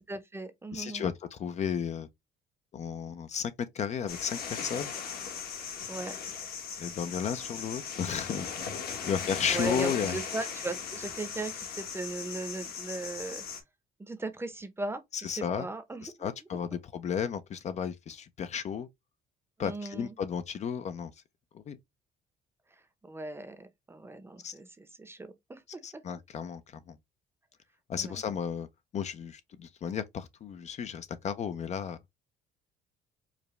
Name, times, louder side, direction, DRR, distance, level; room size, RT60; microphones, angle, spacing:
voice 1, 0.1-1.1 5.9-6.2 9.0-13.4 14.0-15.0 15.3-16.3 19.6-20.1 23.0-25.8 27.9-28.2, right 2 dB, 15° right, 0.7 m, -38 dB
voice 2, 0.7-2.1 2.7-4.9 6.8-8.5 9.0-10.2 15.1-15.7 16.0-18.9 19.6-21.1 21.5-21.8 24.4-24.5 25.8-27.0 27.9-28.7 28.9-32.0, left 7 dB, 40° left, 0.5 m, -33 dB
sound 1, 4.1-13.6, left 6 dB, 65° left, 1.3 m, -38 dB
4.8 x 2.2 x 3.1 m
cardioid pair, 110°, 17 cm